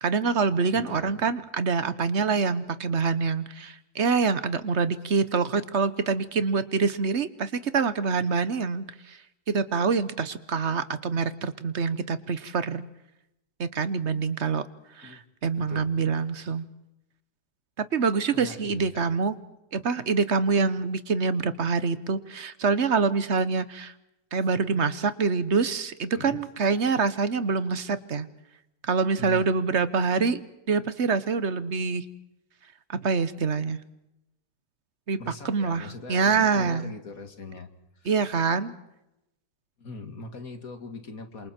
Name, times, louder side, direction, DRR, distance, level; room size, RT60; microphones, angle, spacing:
voice 1, 0.0-9.2 9.5-12.9 13.6-14.6 15.0-16.7 17.8-19.3 19.7-23.9 24.3-28.3 28.8-30.4 30.7-32.0 32.9-33.8 35.1-35.2 35.4-36.9 38.0-38.7, right 5 dB, 45° right, 13 dB, 1.2 m, -25 dB
voice 2, 0.7-1.2 15.0-15.2 15.6-15.9 18.3-19.1 26.1-26.4 29.2-29.5 35.2-37.7 38.0-38.3 39.8-41.5, left 3 dB, 50° left, 7 dB, 2.3 m, -41 dB
28.0 x 27.5 x 4.4 m, 0.89 s
omnidirectional pair, 2.0 m